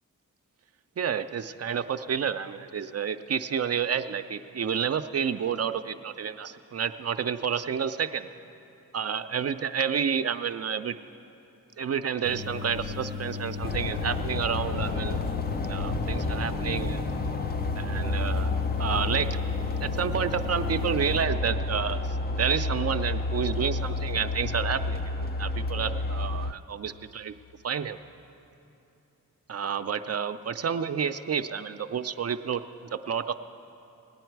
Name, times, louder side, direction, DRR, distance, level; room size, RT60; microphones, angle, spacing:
voice 1, 1.0-8.3 8.9-11.0 11.8-15.2 15.7-17.0 17.7-18.5 18.8-19.4 19.8-27.3 27.6-28.0 29.5-32.6 32.9-33.3, right 7 dB, 50° right, 10 dB, 0.5 m, -30 dB
sound 1, 12.2-21.2, left 4 dB, 85° left, 0.9 m, -36 dB
sound 2, 13.6-26.5, left 3 dB, 30° left, 0.5 m, -30 dB
18.5 x 9.3 x 4.6 m, 2.8 s
cardioid pair, 55°, 33 cm